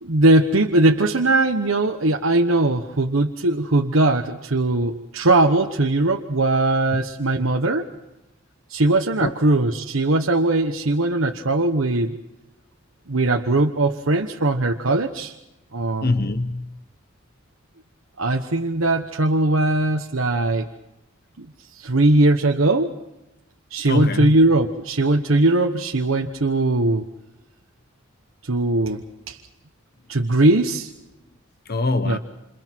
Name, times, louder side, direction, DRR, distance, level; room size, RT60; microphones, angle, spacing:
voice 1, 0.0-7.9 8.7-12.1 13.1-15.3 15.7-16.1 18.2-20.7 21.4-21.5 21.7-22.9 23.7-27.1 28.5-29.4 30.1-30.9 32.0-32.2, right 2 dB, 85° right, 1.2 m, -20 dB
voice 2, 16.0-16.7 23.8-24.3 31.7-32.2, left 2 dB, 50° left, 1.0 m, -23 dB
28.5 x 28.0 x 4.6 m
head